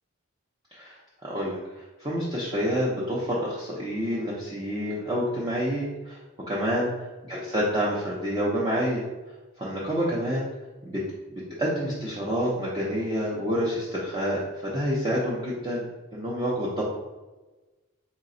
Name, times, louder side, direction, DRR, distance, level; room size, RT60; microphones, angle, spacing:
voice 1, 0.7-6.2 6.5-6.9 7.3-9.0 9.6-10.5 10.8-11.0 11.3-15.9 16.1-16.8, equal, 20° right, -7 dB, 0.6 m, -28 dB
4.0 x 2.2 x 3.8 m, 1.2 s
head